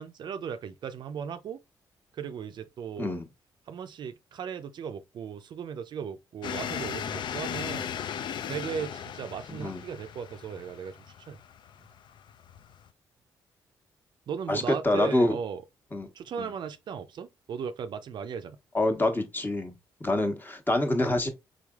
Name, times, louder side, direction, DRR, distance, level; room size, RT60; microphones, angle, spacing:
voice 1, 0.0-1.6 2.1-3.2 3.7-7.9 8.5-11.0 11.3-11.4 14.3-15.6 16.1-18.6, right 7 dB, 60° right, 0.4 m, -37 dB
sound 1, 6.4-12.9, left 8 dB, 65° left, 0.4 m, -37 dB
voice 2, 14.5-15.4 15.9-16.1 16.4-16.5 18.7-19.7 20.0-21.3, left 1 dB, 25° left, 1.1 m, -26 dB
3.8 x 3.2 x 2.3 m
supercardioid pair, 60°, 9 cm